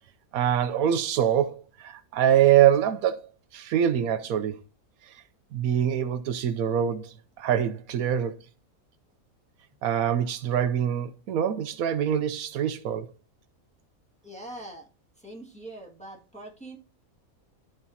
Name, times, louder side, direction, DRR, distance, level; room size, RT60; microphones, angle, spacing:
voice 1, 0.3-4.6 5.5-8.4 9.8-13.1, right 10 dB, 80° right, 1.1 m, -24 dB
voice 2, 14.2-14.9 15.2-16.8, right 1 dB, 5° left, 1.8 m, -42 dB
13.0 x 5.0 x 2.8 m
omnidirectional pair, 1.5 m